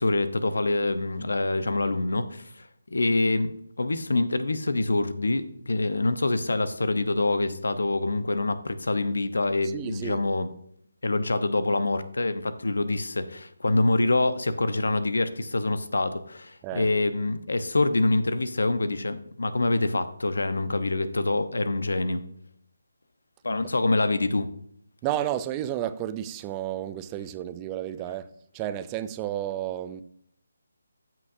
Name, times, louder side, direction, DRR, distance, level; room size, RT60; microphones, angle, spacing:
voice 1, 0.0-10.5 11.0-22.2 23.4-24.5, left 2 dB, 70° left, 0.9 m, -26 dB
voice 2, 9.7-10.2 16.6-16.9 23.6-23.7 25.0-30.0, right 12 dB, 20° right, 0.4 m, -32 dB
13.5 x 6.1 x 2.7 m
figure-of-eight pair, 155°, 0 cm